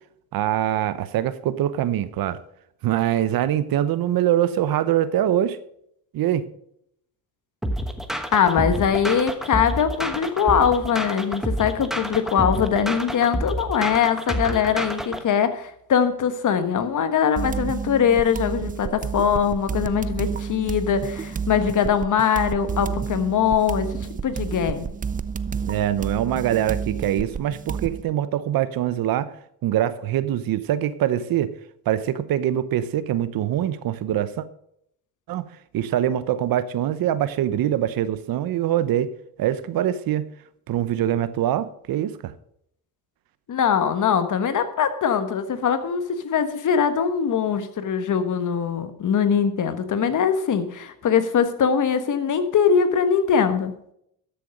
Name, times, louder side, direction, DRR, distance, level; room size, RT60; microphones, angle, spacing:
voice 1, 0.3-2.4 2.8-5.6 6.1-6.5 25.7-29.3 29.6-31.5 31.9-34.5 35.3-35.5 35.7-39.1 39.4-40.3 40.7-42.3, right 11 dB, 65° right, 0.8 m, -23 dB
sound 1, 7.6-15.2, equal, ahead, 1.2 m, -28 dB
voice 2, 8.3-24.9 43.5-53.7, left 7 dB, 50° left, 1.4 m, -22 dB
sound 2, 17.4-28.0, right 6 dB, 20° right, 0.5 m, -30 dB
13.0 x 6.8 x 5.2 m
cardioid pair, 90°, 38 cm